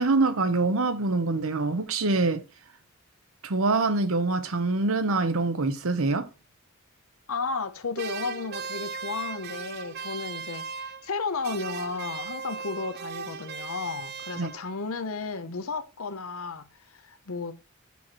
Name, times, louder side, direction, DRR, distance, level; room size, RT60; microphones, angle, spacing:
voice 1, 0.0-2.4 3.4-6.3 14.4-14.5, right 3 dB, 70° right, 0.9 m, -25 dB
voice 2, 7.3-17.5, left 4 dB, 70° left, 0.8 m, -33 dB
sound 1, 7.9-11.2 11.4-14.8, right 6 dB, 45° right, 0.5 m, -38 dB
7.0 x 4.7 x 4.2 m
head